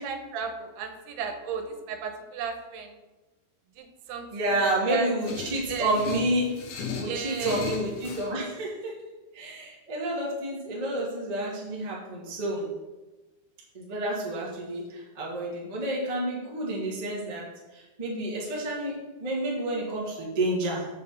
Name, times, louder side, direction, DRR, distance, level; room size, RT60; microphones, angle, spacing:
voice 1, 0.0-2.9 3.8-5.1 5.7-6.0 7.0-7.7, right 6 dB, 85° right, 6 dB, 2.9 m, -34 dB
voice 2, 4.3-6.6 6.9-8.9 9.3-12.7 13.7-17.5 17.7-20.9, right 1 dB, 30° right, -5 dB, 0.7 m, -30 dB
sound 1, 5.2-8.3, left 5 dB, 65° left, 2.1 m, -36 dB
6.9 x 4.9 x 6.9 m, 1.1 s
omnidirectional pair, 4.5 m